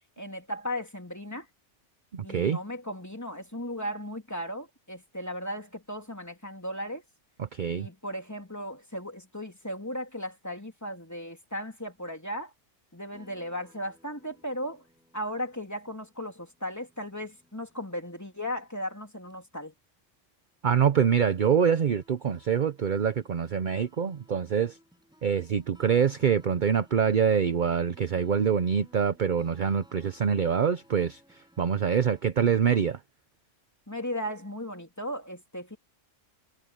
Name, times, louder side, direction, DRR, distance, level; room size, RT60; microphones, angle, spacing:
voice 1, 0.2-1.5 2.2-7.0 7.8-12.5 12.9-14.8 15.1-19.7 33.9-35.8, equal, 15° left, 2.9 m, -36 dB
voice 2, 2.1-2.6 7.4-7.9 20.6-24.8 25.2-31.2 31.6-33.0, right 7 dB, 45° right, 0.8 m, -25 dB
sound 1, 13.1-19.5 20.0-20.1 21.0-21.2 21.7-32.3, equal, 5° right, 6.1 m, -61 dB
omnidirectional pair, 1.2 m